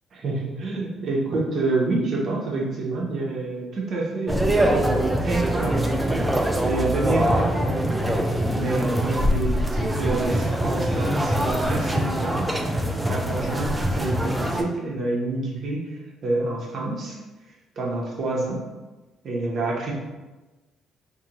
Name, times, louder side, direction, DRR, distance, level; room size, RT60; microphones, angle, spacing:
voice 1, 0.1-12.5 13.1-17.2 17.8-18.6 19.2-19.9, right 2 dB, 55° right, -2 dB, 0.6 m, -28 dB
sound 1, 4.3-14.6, right 1 dB, 10° right, 0.3 m, -23 dB
2.6 x 2.5 x 2.9 m, 1.2 s
cardioid pair, 95°, 0 cm